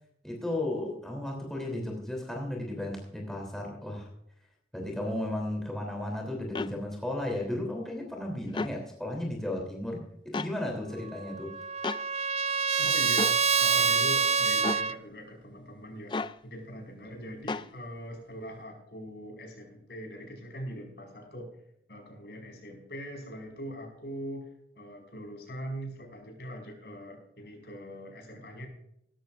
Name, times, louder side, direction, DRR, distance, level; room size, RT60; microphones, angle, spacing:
voice 1, 0.2-4.1 4.7-11.5, left 1 dB, 5° left, -1 dB, 3.2 m, -34 dB
sound 1, 6.5-6.7 8.5-8.8 10.3-10.5 11.8-12.0 13.2-13.4 14.6-14.9 16.1-16.4 17.5-17.7, left 3 dB, 25° left, 0.4 m, -32 dB
Trumpet, 11.1-15.0, right 6 dB, 40° right, 0.5 m, -26 dB
voice 2, 12.8-16.1 16.4-21.5 21.9-24.5 24.8-28.7, equal, 65° left, 2 dB, 5.2 m, -42 dB
18.0 x 14.0 x 2.5 m, 0.73 s
head